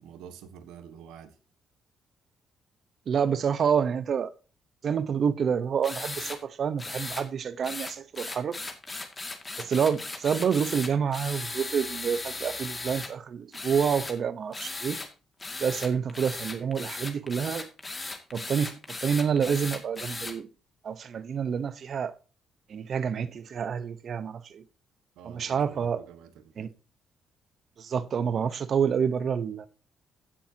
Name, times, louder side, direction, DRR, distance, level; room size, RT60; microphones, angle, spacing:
voice 1, 0.0-1.3 25.2-26.7, right 8 dB, 90° right, 1.5 m, -48 dB
voice 2, 3.1-4.3 4.8-8.6 9.6-15.0 15.6-17.7 18.3-20.5 20.8-22.1 22.7-24.6 25.2-26.0 26.6-26.7 27.8-29.7, right 7 dB, 55° right, 0.9 m, -28 dB
sound 1, 5.8-6.4 6.8-7.2 7.6-13.1 13.5-14.1 14.5-15.1 15.4-20.3, left 3 dB, 25° left, 2.2 m, -37 dB
16.0 x 7.5 x 2.8 m
cardioid pair, 90°, 0 cm